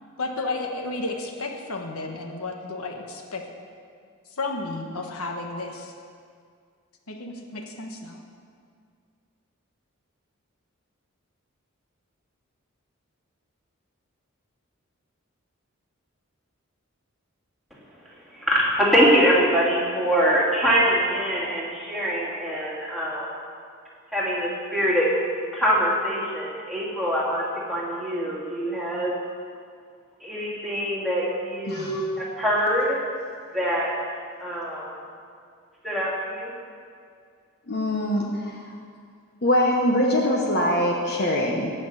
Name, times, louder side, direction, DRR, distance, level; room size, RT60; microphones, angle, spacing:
voice 1, 0.2-3.4 4.4-5.9 7.1-8.2, left 3 dB, 80° left, 3 dB, 1.3 m, -32 dB
voice 2, 18.3-23.3 24.1-25.1 25.5-29.1 30.2-33.0 33.5-33.9 34.4-34.9 35.8-36.5, equal, ahead, -7 dB, 2.6 m, -23 dB
voice 3, 31.7-32.0 37.7-38.6 39.4-41.7, left 1 dB, 45° left, -1 dB, 1.2 m, -23 dB
18.0 x 6.0 x 6.8 m, 2.2 s
head